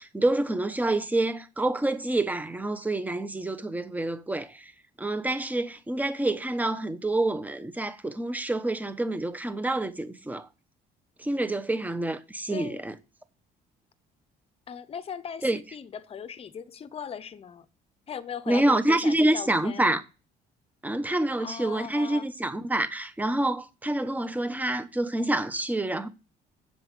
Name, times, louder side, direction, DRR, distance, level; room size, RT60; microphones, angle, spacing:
voice 1, 0.0-4.7 5.0-10.5 11.2-12.9 15.4-15.6 18.5-20.0 20.8-26.1, right 2 dB, 10° right, 1.1 m, -27 dB
voice 2, 12.5-12.8 14.7-17.7 18.1-20.0 21.4-22.3, left 7 dB, 35° left, 0.8 m, -38 dB
7.9 x 6.9 x 6.2 m
cardioid pair, 110°, 17 cm